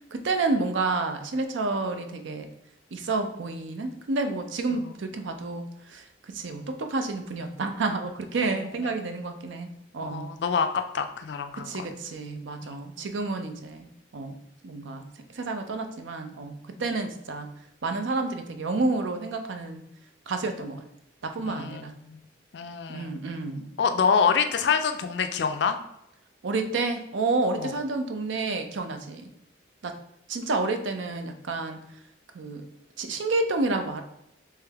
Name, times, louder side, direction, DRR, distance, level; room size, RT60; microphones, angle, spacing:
voice 1, 0.1-2.5 2.9-9.7 9.9-10.3 11.6-14.4 14.6-15.0 15.3-17.5 17.8-19.8 20.3-20.8 21.2-21.9 22.9-23.7 26.4-29.3 29.8-30.0 30.3-31.9 32.3-32.7 33.0-34.0, right 3 dB, 75° right, 7 dB, 0.5 m, -30 dB
voice 2, 8.8-9.2 10.0-12.0 12.7-12.8 21.4-21.8 22.1-22.2 22.5-23.2 23.8-25.8 27.6-27.7, left 6 dB, 65° left, 7 dB, 0.4 m, -26 dB
3.4 x 3.2 x 3.4 m, 0.81 s
head